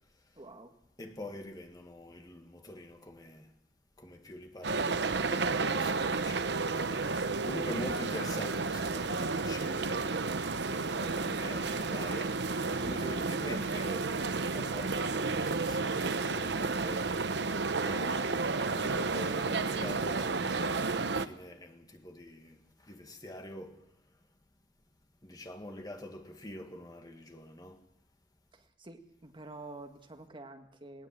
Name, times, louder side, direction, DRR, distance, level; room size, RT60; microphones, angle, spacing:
voice 1, 0.4-0.7 28.5-31.1, right 2 dB, 30° right, 1.7 m, -48 dB
voice 2, 1.0-3.5 4.0-10.3 10.7-17.1 17.8-23.8 25.2-27.8, left 1 dB, 20° left, 1.8 m, -45 dB
sound 1, 4.6-21.3, right 4 dB, 65° right, 0.9 m, -32 dB
19.5 x 19.0 x 7.5 m
head